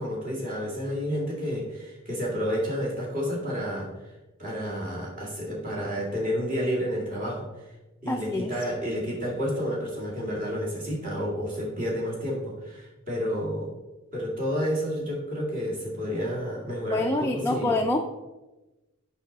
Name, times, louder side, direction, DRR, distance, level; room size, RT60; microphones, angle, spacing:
voice 1, 0.0-4.1 4.4-7.7 8.0-13.7 14.1-17.8, equal, 40° right, -4 dB, 2.0 m, -30 dB
voice 2, 8.1-8.5 16.9-18.0, left 2 dB, 10° left, 1 dB, 0.4 m, -26 dB
8.1 x 5.5 x 4.0 m, 1.1 s
head